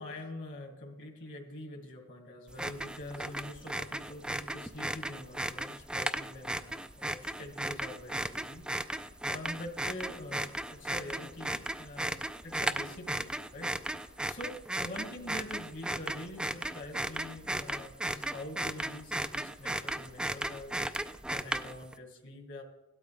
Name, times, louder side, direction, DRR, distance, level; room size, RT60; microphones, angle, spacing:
voice 1, 0.0-20.7 21.0-22.6, left 1 dB, 60° left, 2 dB, 2.0 m, -45 dB
sound 1, 2.5-21.9, right 1 dB, 5° right, 0.4 m, -36 dB
17.0 x 12.0 x 3.4 m, 0.98 s
head